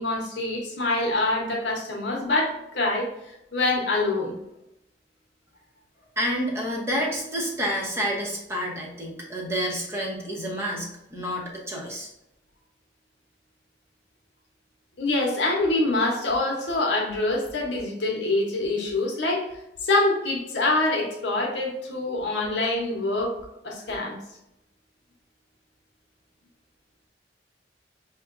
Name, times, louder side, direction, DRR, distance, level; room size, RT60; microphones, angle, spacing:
voice 1, 0.0-3.1 3.5-4.4 15.0-19.5 19.8-23.4 23.6-24.2, left 2 dB, 70° left, -1 dB, 0.9 m, -25 dB
voice 2, 6.2-12.1, equal, 15° right, -2 dB, 0.8 m, -29 dB
5.6 x 2.2 x 2.5 m, 0.86 s
head